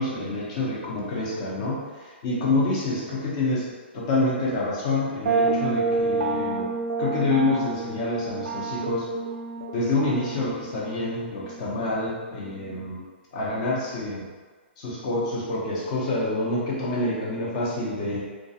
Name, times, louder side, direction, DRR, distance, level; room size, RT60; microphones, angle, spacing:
voice 1, 0.0-6.7 7.0-9.1 9.7-13.0 13.3-14.3 14.8-18.2, left 2 dB, 35° left, -5 dB, 0.7 m, -27 dB
sound 1, 5.3-12.9, right 3 dB, 90° right, 0.3 m, -29 dB
2.3 x 2.3 x 2.7 m, 1.4 s
hypercardioid pair, 160°, 7 cm